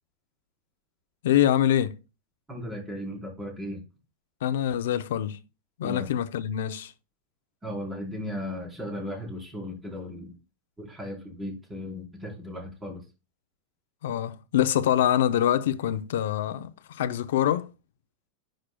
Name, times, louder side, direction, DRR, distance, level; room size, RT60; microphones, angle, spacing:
voice 1, 1.2-2.0 4.4-5.4 5.8-6.9 14.0-17.7, left 11 dB, 80° left, 0.6 m, -25 dB
voice 2, 2.5-3.8 5.8-6.1 7.6-10.3 10.8-13.0, left 1 dB, 10° right, 4.0 m, -36 dB
10.0 x 6.4 x 2.3 m
supercardioid pair, 140°, 0 cm